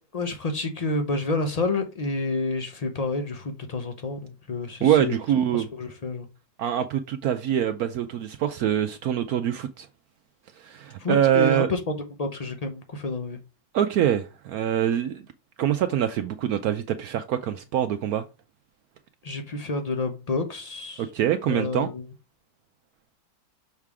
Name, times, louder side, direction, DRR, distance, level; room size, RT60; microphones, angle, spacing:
voice 1, 0.1-5.1 5.5-6.3 11.0-13.4 19.2-21.1 21.5-22.0, left 3 dB, 85° left, 0.3 m, -29 dB
voice 2, 4.8-5.7 6.6-9.9 10.6-11.7 13.7-15.2 15.6-18.2 21.0-21.9, right 10 dB, 70° right, 0.9 m, -24 dB
6.5 x 3.6 x 4.7 m
omnidirectional pair, 1.9 m